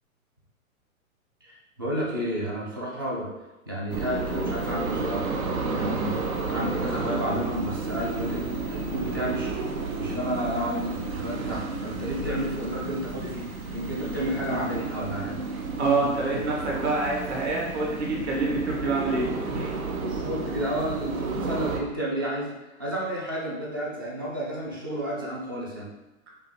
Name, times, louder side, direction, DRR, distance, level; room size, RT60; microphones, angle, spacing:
voice 1, 1.4-3.3 3.7-5.4 5.7-6.2 6.5-9.5 10.0-15.4 19.9-22.5 22.8-25.9, right 1 dB, 20° right, -4 dB, 0.3 m, -31 dB
sound 1, 3.9-21.8, right 3 dB, 80° right, 0.6 m, -32 dB
voice 2, 15.8-19.7, right 3 dB, 50° right, -2 dB, 1.4 m, -26 dB
5.3 x 2.5 x 3.2 m, 1.0 s
figure-of-eight pair, 110°, 42 cm